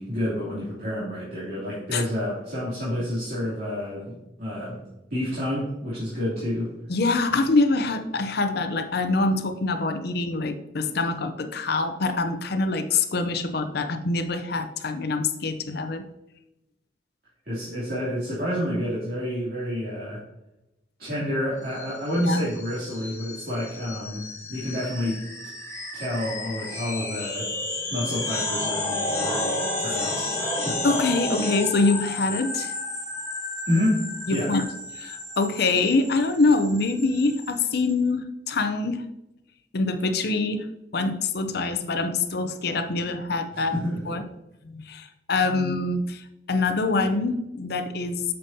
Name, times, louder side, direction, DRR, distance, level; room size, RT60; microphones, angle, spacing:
voice 1, 0.0-4.8 5.1-6.7 17.4-20.2 21.0-24.2 24.5-25.2 25.9-27.5 27.9-30.8 33.7-34.0 34.3-34.5 43.5-44.1, left 1 dB, 55° right, -10 dB, 2.8 m, -29 dB
voice 2, 6.9-16.1 22.2-22.4 30.8-32.7 34.3-34.6 34.9-39.0 39.7-40.7 40.9-43.7 44.1-44.2 44.6-48.2, left 3 dB, 60° left, 8 dB, 0.6 m, -25 dB
sound 1, 21.7-37.9, left 2 dB, 15° left, 1.8 m, -32 dB
8.8 x 6.8 x 2.7 m, 0.89 s
head